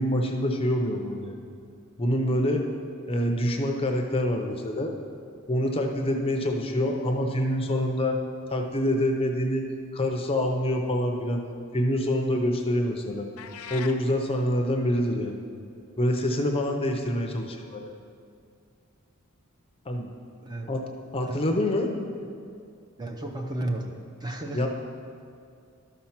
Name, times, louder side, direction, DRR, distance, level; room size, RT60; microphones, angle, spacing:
voice 1, 0.0-1.3 2.0-2.6 3.1-4.9 5.5-8.2 8.5-11.4 11.7-13.3 13.7-15.4 16.0-17.9 19.9-20.1 20.7-20.8 21.1-21.9 24.5-24.7, left 1 dB, 25° left, 3 dB, 0.6 m, -26 dB
sound 1, 13.4-14.0, left 7 dB, 70° left, 0.5 m, -39 dB
voice 2, 23.0-23.9 24.2-24.7, right 1 dB, 20° right, 2 dB, 0.6 m, -33 dB
12.0 x 4.4 x 5.8 m, 2.3 s
head